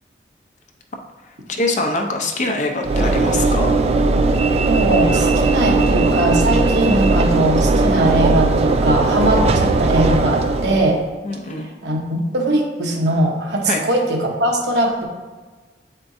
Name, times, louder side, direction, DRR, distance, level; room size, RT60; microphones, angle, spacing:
voice 1, 1.5-3.8 11.2-11.7 13.7-13.8, left 2 dB, 45° left, 3 dB, 0.6 m, -23 dB
Train / Engine / Alarm, 2.8-11.1, right 3 dB, 35° right, 0.3 m, -18 dB
voice 2, 4.7-11.0 11.8-15.1, right 1 dB, 75° right, 0 dB, 1.0 m, -20 dB
8.1 x 4.4 x 2.7 m, 1.3 s
head